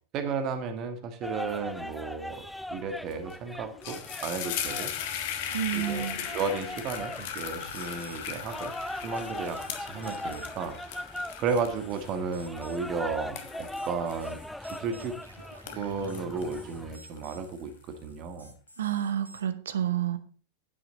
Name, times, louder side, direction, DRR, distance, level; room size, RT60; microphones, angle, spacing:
voice 1, 0.1-4.9 5.7-8.7 9.0-15.2 15.7-18.5, right 5 dB, 35° right, 7 dB, 1.7 m, -34 dB
sound 1, 1.2-17.0, left 1 dB, 5° left, 0.4 m, -40 dB
sound 2, 3.1-3.3 3.6-15.2 15.5-17.4, left 9 dB, 50° left, 1.4 m, -38 dB
voice 2, 5.5-6.2 18.8-20.2, right 10 dB, 65° right, 12 dB, 0.9 m, -29 dB
sound 3, 5.5-19.4, right 1 dB, 85° right, 1.4 m, -51 dB
9.9 x 8.8 x 3.9 m, 0.39 s
figure-of-eight pair, 90°, 0 cm